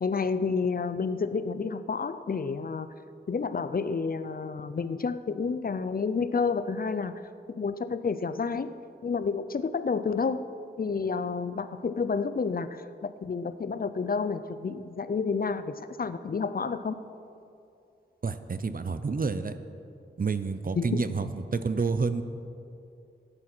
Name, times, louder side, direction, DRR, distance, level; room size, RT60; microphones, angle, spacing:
voice 1, 0.0-2.9 3.3-7.1 7.5-8.7 9.0-10.5 10.8-17.0 20.8-21.0, left 5 dB, 50° left, 12 dB, 0.5 m, -30 dB
voice 2, 18.2-19.5 20.2-22.2, right 4 dB, 45° right, 11 dB, 0.7 m, -29 dB
13.5 x 9.9 x 6.2 m, 2.6 s
wide cardioid pair, 65°, 19 cm